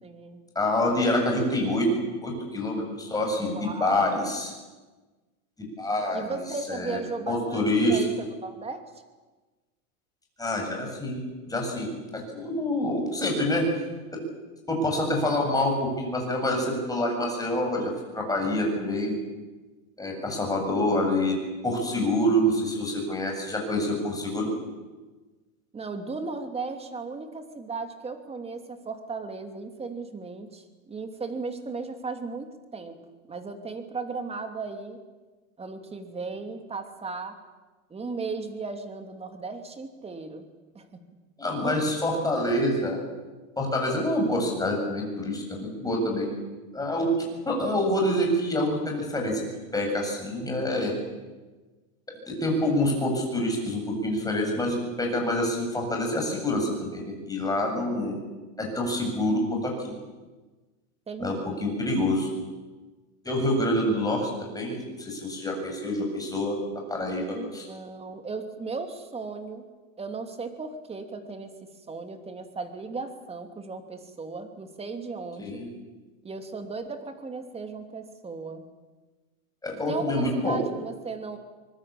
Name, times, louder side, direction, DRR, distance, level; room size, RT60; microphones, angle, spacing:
voice 1, 0.0-0.4 3.4-4.3 6.1-8.8 25.7-33.0 33.3-35.0 35.6-37.4 37.9-40.5 40.7-41.0 41.6-41.8 42.1-42.5 61.1-61.7 67.3-69.7 70.0-71.5 71.9-75.6 76.2-78.6 79.9-81.4, right 4 dB, 15° right, 7 dB, 2.8 m, -36 dB
voice 2, 0.5-1.9 2.2-4.5 5.6-6.4 6.7-7.0 7.3-8.0 10.4-13.8 14.1-14.2 14.7-19.1 20.0-21.4 21.6-24.5 41.4-43.0 43.6-46.3 46.7-47.1 47.4-49.4 49.7-50.9 52.3-58.2 58.6-59.9 61.2-62.3 63.2-66.6 66.9-67.7 75.4-75.7 79.6-80.6, left 1 dB, 10° left, 1 dB, 7.8 m, -27 dB
24.0 x 21.0 x 8.6 m, 1.3 s
supercardioid pair, 130°, 42 cm